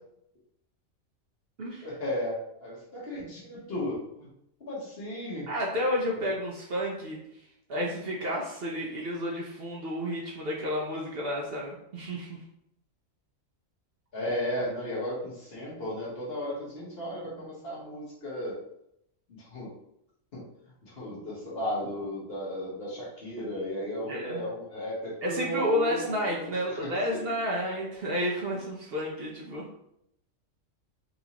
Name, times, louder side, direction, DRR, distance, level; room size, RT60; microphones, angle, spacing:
voice 1, 1.8-4.3 4.6-5.5 6.2-6.3 14.1-18.6 19.3-19.7 20.3-20.5 20.8-27.2 27.6-27.7, equal, 50° left, -5 dB, 1.3 m, -35 dB
voice 2, 5.5-7.2 7.7-12.4 24.1-24.4 25.2-29.7, equal, 55° right, -2 dB, 0.8 m, -31 dB
4.1 x 2.6 x 2.9 m, 0.76 s
omnidirectional pair, 1.4 m